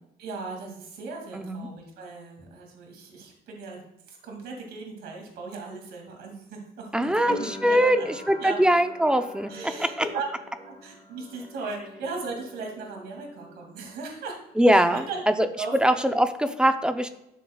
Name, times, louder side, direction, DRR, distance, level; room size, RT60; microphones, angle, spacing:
voice 1, 0.2-3.8 4.1-8.1 8.4-8.6 9.5-10.3 10.6-14.4 14.7-15.2 15.6-15.8 16.1-16.2, right 4 dB, 75° right, 1 dB, 2.5 m, -37 dB
voice 2, 1.3-1.7 6.9-9.5 14.6-15.1 15.4-15.5 15.8-17.1, equal, 5° right, 8 dB, 0.7 m, -22 dB
sound 1, 7.3-14.1 14.3-15.2, left 1 dB, 20° left, 2.5 m, -44 dB
12.5 x 6.6 x 2.4 m, 0.82 s
cardioid pair, 110°, 17 cm